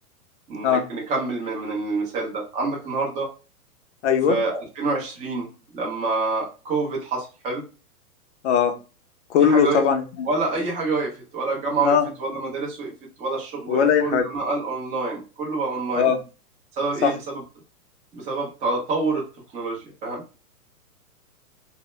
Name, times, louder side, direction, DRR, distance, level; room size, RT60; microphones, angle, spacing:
voice 1, 0.5-3.3 4.3-5.5 5.7-7.6 9.4-9.8 10.3-12.9 13.2-16.1 16.7-17.1 18.1-19.3 19.5-20.2, right 3 dB, 15° right, -3 dB, 0.6 m, -27 dB
voice 2, 4.0-4.4 8.4-8.8 9.3-10.3 11.8-12.1 13.7-14.3 15.9-16.2 17.0-17.2, left 7 dB, 50° left, 7 dB, 0.6 m, -19 dB
2.1 x 2.1 x 3.0 m, 0.33 s
hypercardioid pair, 130°, 45 cm